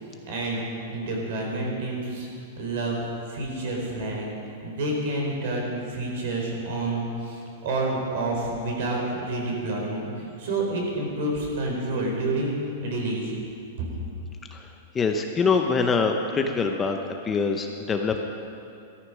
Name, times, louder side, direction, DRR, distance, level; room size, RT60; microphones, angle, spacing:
voice 1, 0.3-0.6 0.9-2.3 2.6-3.0 3.3-4.3 4.6-13.3 13.8-13.9, right 2 dB, 55° right, -1 dB, 4.7 m, -29 dB
voice 2, 14.9-18.2, left 5 dB, 15° left, 4 dB, 0.7 m, -24 dB
15.5 x 13.0 x 6.3 m, 2.5 s
supercardioid pair, 165°, 0 cm